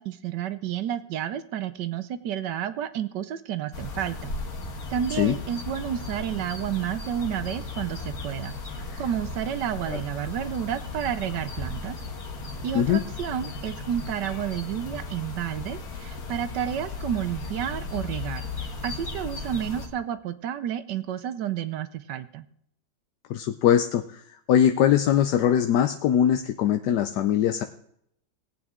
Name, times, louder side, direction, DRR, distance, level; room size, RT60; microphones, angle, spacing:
voice 1, 0.0-4.3 4.9-8.5 9.0-12.0 12.6-22.5, right 10 dB, 70° right, 12 dB, 1.2 m, -31 dB
sound 1, 3.7-19.9, left 3 dB, 55° left, 1.9 m, -36 dB
voice 2, 23.3-24.2 24.5-27.6, left 10 dB, 70° left, 8 dB, 1.1 m, -21 dB
18.0 x 8.7 x 3.6 m, 0.72 s
omnidirectional pair, 2.1 m